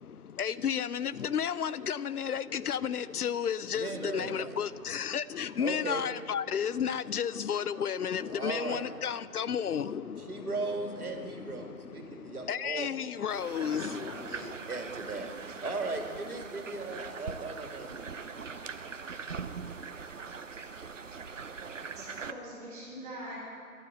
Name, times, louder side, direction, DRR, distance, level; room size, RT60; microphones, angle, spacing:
voice 1, 0.0-14.5, left 8 dB, 90° left, 0.6 m, -33 dB
voice 2, 3.7-4.6 5.6-6.0 8.2-8.9 10.2-13.0 14.3-18.1, right 3 dB, 80° right, 2.4 m, -37 dB
sound 1, 13.3-22.3, right 5 dB, 60° right, 0.7 m, -41 dB
voice 3, 21.9-23.4, right 1 dB, 10° right, 3.4 m, -43 dB
13.0 x 11.5 x 6.7 m
figure-of-eight pair, 180°, 44 cm